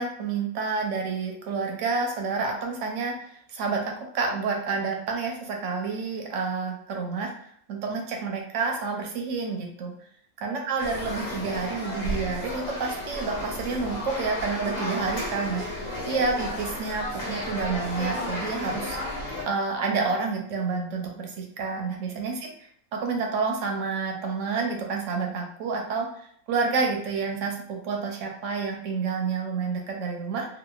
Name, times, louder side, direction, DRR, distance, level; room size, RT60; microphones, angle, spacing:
voice 1, 0.0-9.9 10.4-19.0 19.5-26.1 26.5-30.5, right 4 dB, 70° right, 1 dB, 0.9 m, -29 dB
sound 1, 10.8-19.4, left 1 dB, 85° left, 1.3 m, -33 dB
2.8 x 2.2 x 2.3 m, 0.65 s
omnidirectional pair, 1.5 m